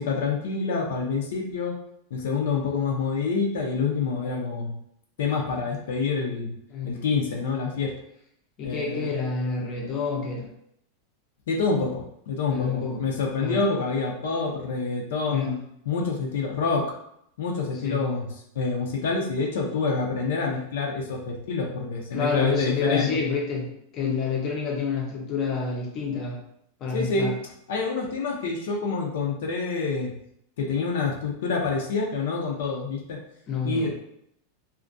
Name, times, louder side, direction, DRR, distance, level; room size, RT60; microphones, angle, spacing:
voice 1, 0.0-1.8 2.1-4.8 5.2-6.5 6.8-7.9 8.6-9.1 11.5-16.8 17.4-18.3 18.5-23.1 26.9-27.3 27.7-30.1 30.6-33.2 33.6-33.9, left 4 dB, 80° left, 0 dB, 0.5 m, -27 dB
voice 2, 8.6-10.5 12.5-13.0 13.4-13.6 15.3-15.6 17.8-18.0 22.1-26.4 26.8-27.3 33.5-33.9, left 4 dB, 30° left, -2 dB, 0.5 m, -28 dB
2.4 x 2.1 x 2.5 m, 0.73 s
supercardioid pair, 160°, 0 cm